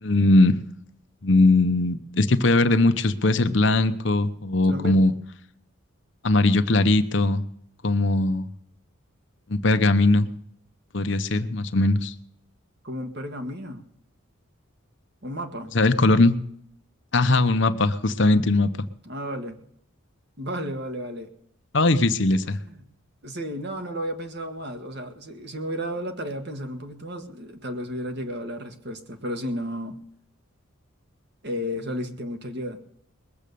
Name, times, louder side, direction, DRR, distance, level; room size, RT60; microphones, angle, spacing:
voice 1, 0.0-0.6 1.2-5.1 6.2-7.4 7.8-8.5 9.5-10.3 10.9-12.1 15.7-16.3 17.1-18.7 21.7-22.6, left 2 dB, 55° left, 10 dB, 0.9 m, -20 dB
voice 2, 4.6-5.0 12.8-13.8 15.2-15.7 19.0-19.5 20.4-21.3 22.4-22.8 23.2-30.0 31.4-32.8, equal, 50° right, 6 dB, 1.7 m, -33 dB
21.0 x 7.6 x 6.9 m, 0.68 s
head